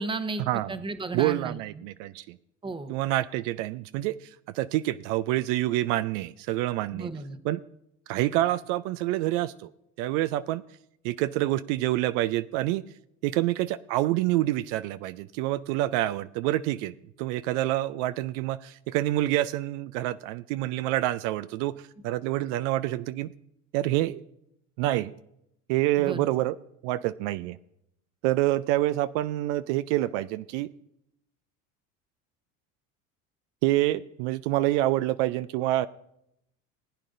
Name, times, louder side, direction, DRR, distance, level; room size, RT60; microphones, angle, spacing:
voice 1, 0.0-1.9 2.6-2.9 6.9-7.4 26.0-26.3, right 3 dB, 15° right, 11 dB, 0.9 m, -34 dB
voice 2, 1.1-2.4 2.9-7.1 7.4-7.6 8.1-9.7 10.0-10.6 11.0-12.8 13.2-16.9 17.2-23.3 23.7-24.2 24.8-25.1 25.7-26.5 26.8-27.6 28.2-30.7 33.6-35.9, right 15 dB, 65° right, 13 dB, 0.5 m, -27 dB
19.5 x 9.0 x 2.6 m, 0.78 s
hypercardioid pair, 85°, 39 cm